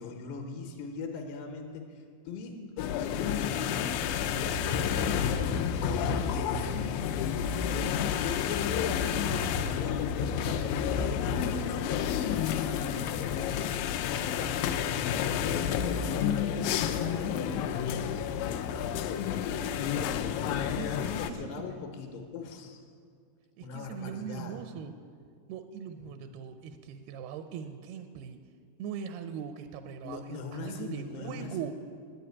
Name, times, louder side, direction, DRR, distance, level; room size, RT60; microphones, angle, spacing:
voice 1, 0.0-3.8 4.1-5.5 6.1-6.7 7.7-13.3 14.1-18.0 18.4-19.8 20.4-22.8 23.6-24.6 26.0-26.1 30.0-31.5, left 5 dB, 75° left, 3 dB, 3.0 m, -41 dB
sound 1, 2.8-21.3, left 8 dB, 90° left, 3.0 m, -30 dB
voice 2, 20.7-21.6 23.6-24.9 25.5-28.4 28.8-31.7, right 8 dB, 85° right, 9 dB, 2.3 m, -40 dB
11.0 x 9.0 x 9.5 m, 2.2 s
omnidirectional pair, 5.1 m